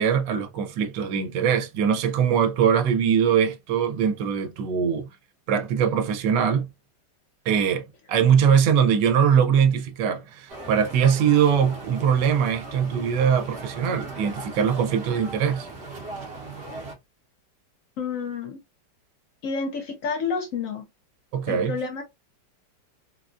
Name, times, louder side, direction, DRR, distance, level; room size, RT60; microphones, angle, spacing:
voice 1, 0.0-5.1 5.5-6.7 7.5-15.7 21.3-21.8, right 7 dB, 90° right, 1.2 m, -22 dB
sound 1, 10.5-16.9, right 2 dB, 50° right, 0.9 m, -38 dB
voice 2, 18.0-18.6 19.4-20.8 21.5-22.0, left 5 dB, 65° left, 0.8 m, -29 dB
3.7 x 2.3 x 2.3 m
omnidirectional pair, 1.9 m